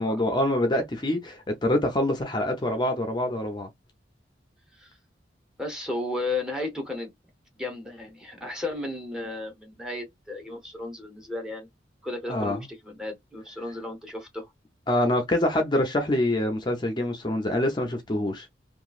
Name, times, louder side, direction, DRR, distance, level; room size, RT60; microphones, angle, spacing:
voice 1, 0.0-3.7 12.3-12.7 14.9-18.5, left 1 dB, 25° left, 0.5 m, -25 dB
voice 2, 5.6-7.1 7.6-11.7 12.0-14.5, left 2 dB, 5° right, 0.8 m, -34 dB
2.9 x 2.3 x 2.3 m
head